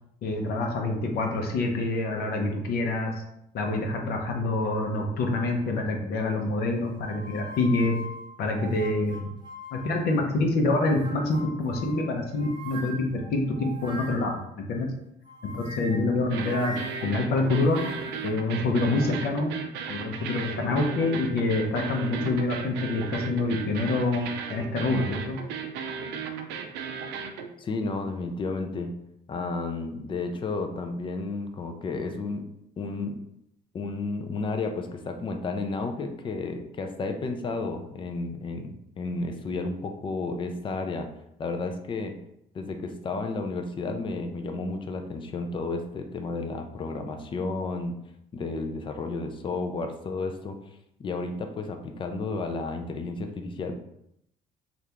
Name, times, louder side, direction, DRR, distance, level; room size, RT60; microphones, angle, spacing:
voice 1, 0.2-3.2 3.5-8.0 8.4-9.3 9.7-14.9 15.5-16.8 17.0-17.8 18.2-19.5 19.9-25.4, left 2 dB, 65° left, 2 dB, 0.7 m, -26 dB
sound 1, 7.0-10.3 10.7-14.5 15.3-18.3, equal, 25° right, 0.6 m, -42 dB
sound 2, 16.3-27.5, right 6 dB, 85° right, 0.4 m, -36 dB
voice 2, 27.6-28.9 29.3-32.5 32.8-33.2 33.7-41.1 41.4-42.1 42.5-48.0 48.3-50.6 51.0-53.8, left 3 dB, 30° left, 5 dB, 0.4 m, -32 dB
2.8 x 2.4 x 3.4 m, 0.78 s
cardioid pair, 110°, 17 cm